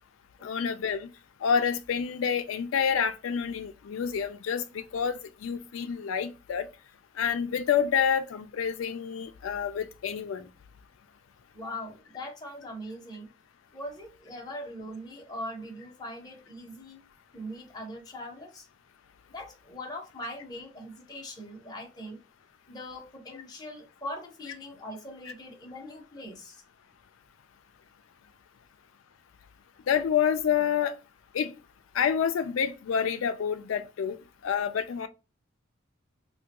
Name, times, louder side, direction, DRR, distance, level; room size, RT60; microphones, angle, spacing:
voice 1, 0.4-1.1 1.4-6.7 7.2-10.5 23.3-23.4 29.9-30.9 31.3-31.5 31.9-34.2 34.4-35.1, left 7 dB, 85° left, 0.4 m, -28 dB
voice 2, 11.5-13.3 13.7-17.0 17.3-18.7 19.3-22.2 22.7-26.6, left 1 dB, 20° left, 0.8 m, -41 dB
3.4 x 2.2 x 2.8 m
head